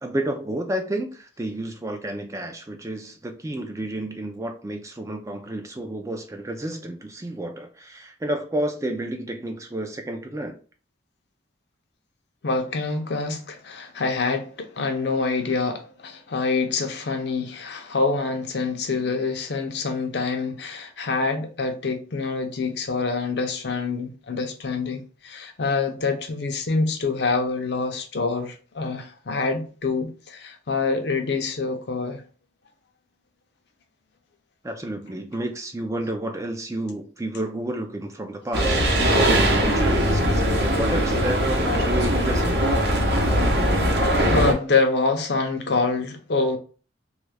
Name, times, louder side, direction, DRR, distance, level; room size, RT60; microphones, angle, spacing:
voice 1, 0.0-10.6 34.6-38.8 39.1-42.6, right 1 dB, 15° right, 0.3 m, -30 dB
voice 2, 12.4-32.2 44.2-46.6, left 4 dB, 60° left, 0.5 m, -26 dB
sound 1, 38.5-44.5, equal, 55° right, 0.7 m, -20 dB
3.0 x 2.3 x 3.3 m
head